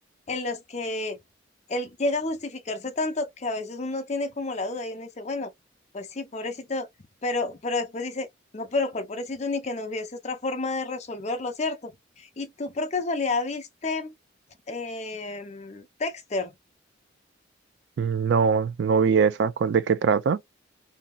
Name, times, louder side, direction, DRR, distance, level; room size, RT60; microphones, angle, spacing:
voice 1, 0.3-1.2 1.7-5.5 5.9-6.9 7.2-8.3 8.5-11.9 12.2-14.1 14.7-16.5, left 3 dB, 35° left, 0.6 m, -30 dB
voice 2, 18.0-20.4, right 6 dB, 60° right, 0.3 m, -22 dB
2.9 x 2.7 x 2.2 m
head